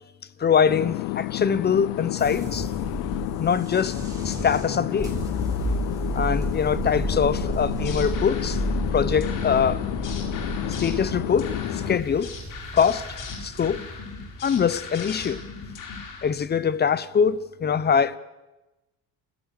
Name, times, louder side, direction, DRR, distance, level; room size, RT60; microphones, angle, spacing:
voice 1, 0.4-2.7 3.4-4.0 4.2-5.1 6.1-8.6 8.9-9.8 10.8-12.3 12.7-13.1 13.4-13.8 14.4-15.4 16.2-18.2, left 7 dB, 25° left, 0.9 m, -23 dB
sound 1, 0.7-12.0, left 21 dB, 90° left, 0.7 m, -31 dB
sound 2, 2.2-16.4, right 1 dB, 10° right, 6.6 m, -32 dB
sound 3, 7.6-16.3, left 5 dB, 55° left, 4.3 m, -39 dB
29.5 x 16.0 x 6.7 m
cardioid pair, 130°, 37 cm